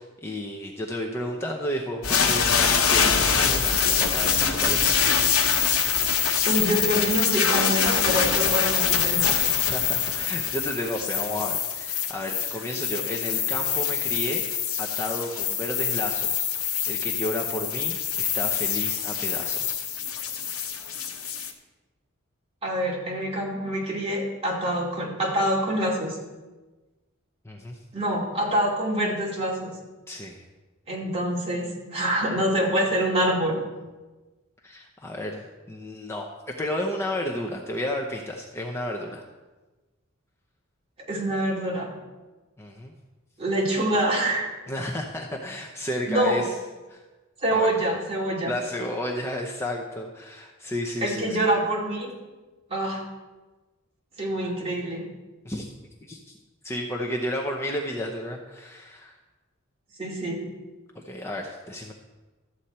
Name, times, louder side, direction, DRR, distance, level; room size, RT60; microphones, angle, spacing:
voice 1, 0.0-5.0 9.6-14.4 14.8-19.8 27.4-27.8 30.1-30.4 34.6-39.2 42.6-42.9 44.7-46.5 46.9-47.0 47.5-47.7 48.4-51.4 55.4-55.7 56.1-56.4 56.6-59.2 60.9-61.9, left 1 dB, 15° left, 0 dB, 0.8 m, -32 dB
sound 1, 2.0-21.5, left 7 dB, 80° left, 1.0 m, -24 dB
voice 2, 6.4-9.4 22.6-26.2 27.9-29.7 30.9-33.6 41.1-41.9 43.4-44.5 46.1-46.4 47.4-48.5 51.0-52.1 52.7-53.0 54.2-55.0 60.0-60.4, right 1 dB, 30° right, -4 dB, 2.4 m, -25 dB
13.0 x 8.1 x 4.3 m, 1.2 s
head